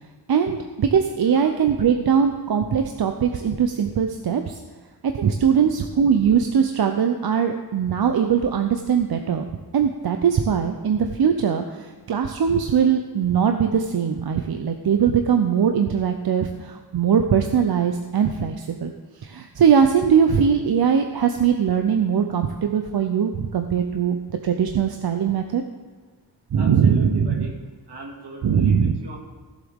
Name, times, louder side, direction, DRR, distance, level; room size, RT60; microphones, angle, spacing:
voice 1, 0.3-4.6 5.0-9.5 9.7-18.9 19.2-24.2 24.4-25.6 26.5-27.5 28.4-28.9, right 7 dB, 65° right, 5 dB, 0.7 m, -21 dB
voice 2, 1.1-1.5 26.6-27.5 27.9-29.2, right 2 dB, 85° right, -1 dB, 2.4 m, -39 dB
16.5 x 7.5 x 3.6 m, 1.4 s
wide cardioid pair, 105°, 39 cm